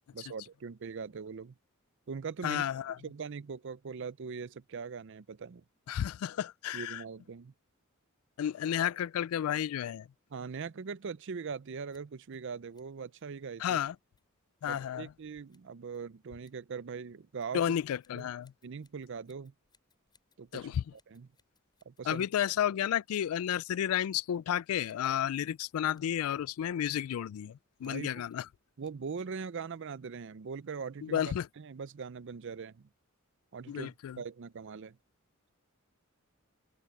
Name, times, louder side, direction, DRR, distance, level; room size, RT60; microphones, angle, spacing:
voice 1, 0.1-1.6 2.1-2.6 3.0-5.6 6.7-7.5 10.3-13.8 14.7-17.8 18.1-18.3 18.6-19.5 20.4-20.7 21.1-21.3 21.9-22.3 27.8-28.2 28.8-31.2 31.6-32.9 33.5-35.0, right 5 dB, 60° right, 0.5 m, -41 dB
voice 2, 2.4-3.0 5.9-7.0 8.4-10.1 13.6-14.0 14.6-15.1 17.5-18.5 20.5-20.8 22.1-28.5 31.0-31.5 33.7-34.2, left 10 dB, 80° left, 0.3 m, -32 dB
Scissors, 11.8-29.3, left 5 dB, 20° left, 7.7 m, -76 dB
open air
head